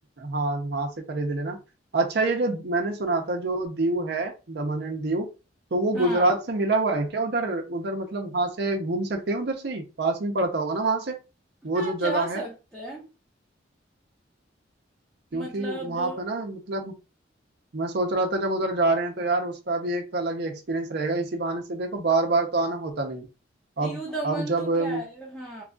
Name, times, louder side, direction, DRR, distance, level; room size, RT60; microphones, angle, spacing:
voice 1, 0.2-1.6 1.9-5.3 5.7-11.2 11.6-12.4 15.3-16.9 17.7-23.3 23.8-25.0, right 2 dB, 60° right, 0.6 m, -26 dB
voice 2, 5.9-6.3 11.7-13.1 15.3-16.2 23.8-25.6, right 1 dB, ahead, 0.9 m, -35 dB
3.0 x 2.3 x 3.7 m
head